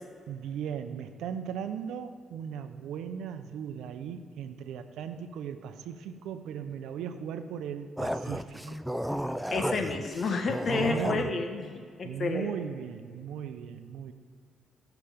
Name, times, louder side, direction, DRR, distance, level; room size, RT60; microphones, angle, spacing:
voice 1, 0.3-8.8 10.7-11.5 12.0-14.1, right 8 dB, 85° right, 9 dB, 0.6 m, -37 dB
sound 1, 8.0-11.3, equal, ahead, 0.4 m, -33 dB
voice 2, 9.5-11.7 12.0-12.5, left 4 dB, 50° left, 5 dB, 1.3 m, -30 dB
15.5 x 5.8 x 5.0 m, 2.2 s
cardioid pair, 90°, 0 cm